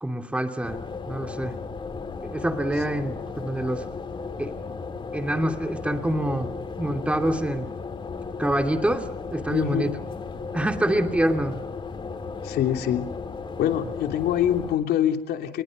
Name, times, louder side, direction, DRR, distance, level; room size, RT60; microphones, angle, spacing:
voice 1, 0.0-0.8 1.0-1.6 2.2-3.8 4.4-4.6 5.1-7.7 8.4-9.9 10.5-11.6, right 1 dB, 5° right, 6 dB, 2.6 m, -26 dB
sound 1, 0.6-14.8, left 4 dB, 30° left, 2.8 m, -35 dB
voice 2, 9.5-9.9 12.4-13.1 13.6-15.6, left 10 dB, 70° left, 5 dB, 3.1 m, -24 dB
29.5 x 21.5 x 5.3 m, 0.79 s
cardioid pair, 110°, 17 cm